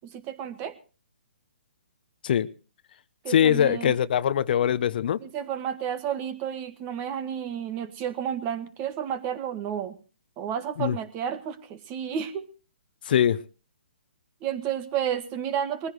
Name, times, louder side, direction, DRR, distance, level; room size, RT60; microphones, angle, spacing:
voice 1, 0.0-0.7 3.2-4.0 5.2-10.0 10.4-12.5 14.4-15.9, right 9 dB, 25° right, 1.6 m, -31 dB
voice 2, 3.3-5.2 10.8-11.0 13.1-13.4, left 9 dB, 55° left, 0.8 m, -22 dB
21.0 x 15.0 x 3.1 m
hypercardioid pair, 145°, 6 cm